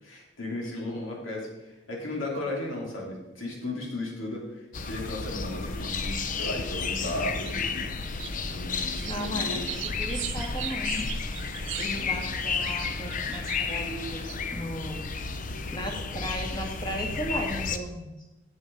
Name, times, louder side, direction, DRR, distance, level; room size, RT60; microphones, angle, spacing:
voice 1, 0.0-7.9 8.4-10.0 11.9-12.2, left 1 dB, 80° left, -2 dB, 3.0 m, -35 dB
sound 1, 4.7-17.8, left 4 dB, 40° left, 0.6 m, -32 dB
sound 2, 6.1-6.4 6.8-7.5 7.9-13.7 14.3-14.4, right 10 dB, 70° right, 0.9 m, -39 dB
voice 2, 9.0-11.1 11.8-15.0 15.7-18.2, equal, 20° left, 0 dB, 1.9 m, -36 dB
10.5 x 7.5 x 5.3 m, 1.0 s
head